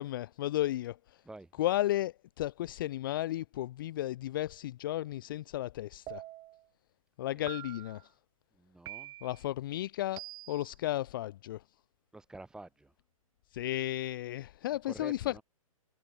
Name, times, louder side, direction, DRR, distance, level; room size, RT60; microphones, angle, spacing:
voice 1, 0.0-1.2 1.6-6.2 7.2-8.1 9.2-11.6 13.5-15.4, left 14 dB, 35° left, 0.5 m, -34 dB
sound 1, 6.1-6.6 7.5-8.0 8.9-9.4 10.2-10.7, right 16 dB, 20° right, 3.4 m, -45 dB
voice 2, 8.6-9.1 12.1-12.9 14.7-15.4, right 2 dB, 5° right, 2.5 m, -48 dB
figure-of-eight pair, 125°, 18 cm